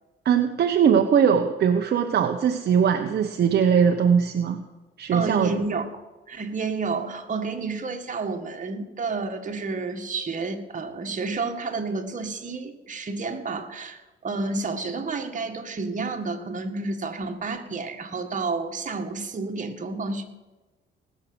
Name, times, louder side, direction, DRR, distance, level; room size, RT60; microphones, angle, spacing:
voice 1, 0.2-4.6 5.0-5.5, right 7 dB, 55° right, 5 dB, 1.0 m, -20 dB
voice 2, 5.1-5.8 6.3-20.2, right 4 dB, 40° right, 4 dB, 1.9 m, -30 dB
19.5 x 6.5 x 8.0 m, 1.2 s
cardioid pair, 90°, 20 cm